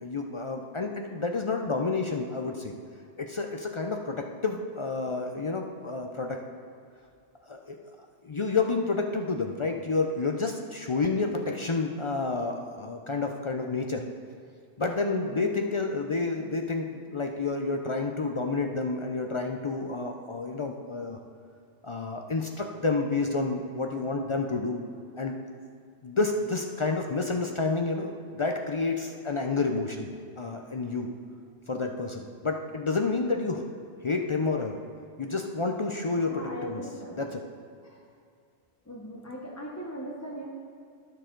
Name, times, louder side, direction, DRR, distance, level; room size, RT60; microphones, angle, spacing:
voice 1, 0.0-2.7 3.2-6.4 7.5-7.8 8.2-14.0 14.8-21.2 21.8-24.8 25.2-25.4 26.0-30.1 30.4-31.1 31.7-33.6 34.0-34.8 35.2-36.8 37.2-37.4, left 3 dB, 50° left, 3 dB, 0.3 m, -29 dB
voice 2, 15.3-15.6 36.3-37.2 37.8-38.0 38.9-40.5, equal, 15° left, -3 dB, 0.7 m, -39 dB
12.5 x 6.6 x 3.8 m, 2.4 s
omnidirectional pair, 1.2 m